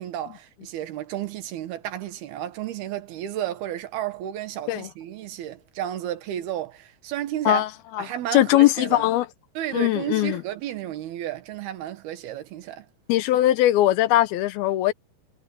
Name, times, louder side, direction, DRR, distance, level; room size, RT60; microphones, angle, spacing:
voice 1, 0.0-7.6 8.0-9.1 9.6-12.9, right 12 dB, 85° right, 3.4 m, -32 dB
voice 2, 8.3-9.3 9.7-10.4 13.1-14.9, left 15 dB, 90° left, 2.8 m, -20 dB
omnidirectional pair, 4.3 m